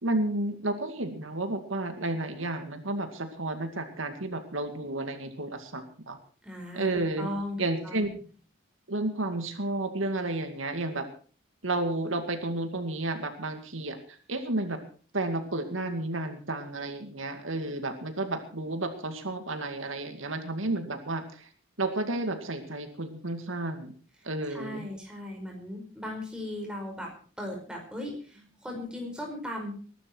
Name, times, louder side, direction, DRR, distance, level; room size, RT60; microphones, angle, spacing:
voice 1, 0.0-6.2 6.7-7.3 7.6-8.1 8.9-11.1 11.6-14.0 14.3-14.8 15.1-21.5 21.8-23.9 24.2-24.8, right 2 dB, 85° right, 7 dB, 2.3 m, -31 dB
voice 2, 6.4-6.9 7.2-8.1 24.5-29.8, left 1 dB, 5° right, 1 dB, 5.1 m, -37 dB
21.0 x 12.0 x 4.6 m, 0.41 s
head